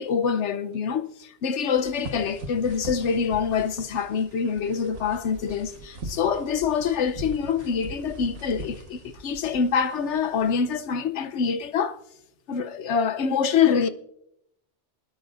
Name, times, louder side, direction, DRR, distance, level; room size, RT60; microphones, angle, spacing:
voice 1, 0.0-12.0 12.5-13.9, left 6 dB, 70° left, 1.0 m, -25 dB
sound 1, 1.7-10.5, right 2 dB, 70° right, 1.6 m, -41 dB
26.5 x 9.8 x 2.5 m
omnidirectional pair, 1.3 m